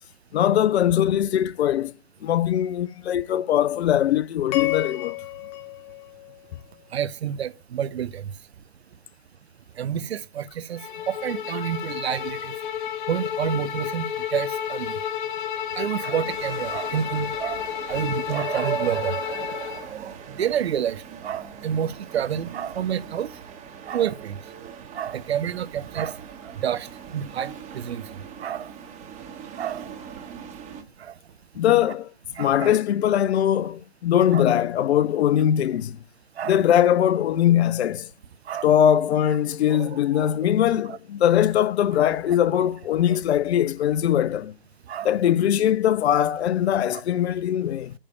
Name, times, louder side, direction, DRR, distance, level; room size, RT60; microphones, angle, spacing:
voice 1, 0.3-1.9 2.2-5.2 31.6-32.1 32.4-36.0 36.5-38.1 38.6-44.5 45.0-47.9, left 10 dB, 80° left, 0.5 m, -21 dB
sound 1, 4.5-6.9, left 18 dB, 30° left, 0.8 m, -31 dB
voice 2, 6.9-8.2 9.8-10.8 11.1-12.5 13.1-15.0 15.8-17.6 17.9-23.3 23.9-24.4 24.9-26.2 26.6-26.9 27.1-28.0 28.4-28.7 29.6-29.9 31.0-31.1 32.3-32.7 34.3-34.4 36.4-36.6 38.5-38.7 39.7-40.4 40.9-41.0 43.1-43.2 44.9-45.1, right 9 dB, 75° right, 0.8 m, -29 dB
Bowed string instrument, 10.8-19.9, left 9 dB, 50° left, 1.1 m, -31 dB
sound 2, 16.2-30.8, right 7 dB, 20° right, 1.5 m, -42 dB
8.8 x 3.3 x 5.4 m
hypercardioid pair, 130°, 32 cm